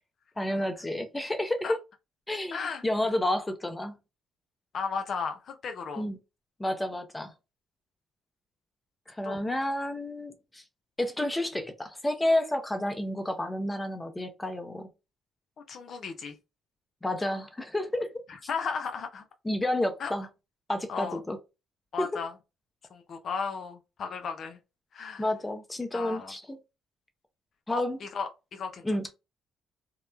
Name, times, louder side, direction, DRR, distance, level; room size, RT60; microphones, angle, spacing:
voice 1, 0.4-1.8 2.3-4.0 6.0-6.2 6.6-7.3 9.1-10.6 11.0-14.9 17.0-18.1 19.4-20.3 20.7-21.4 22.0-22.1 25.2-26.6 27.7-28.0 28.8-29.1, left 1 dB, 15° left, 0.7 m, -30 dB
voice 2, 2.5-2.8 4.7-6.1 9.2-9.4 15.7-16.4 18.5-19.2 20.0-20.1 20.9-21.2 21.9-22.3 22.9-24.6 24.9-25.2 25.9-26.3 27.7-29.1, left 5 dB, 55° left, 0.4 m, -35 dB
2.8 x 2.1 x 2.3 m
supercardioid pair, 65°, 0 cm